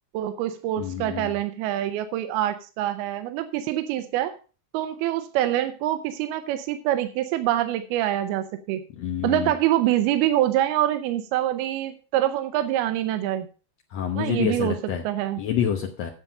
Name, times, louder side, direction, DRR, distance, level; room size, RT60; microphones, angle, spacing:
voice 1, 0.1-4.4 4.7-8.8 9.2-13.5 14.1-14.8 15.0-15.4, right 13 dB, 85° right, 9 dB, 2.6 m, -25 dB
voice 2, 0.8-1.3 8.9-9.5 13.9-15.0 15.4-16.1, left 9 dB, 80° left, 2 dB, 1.5 m, -27 dB
10.0 x 7.3 x 5.3 m, 0.36 s
omnidirectional pair, 4.4 m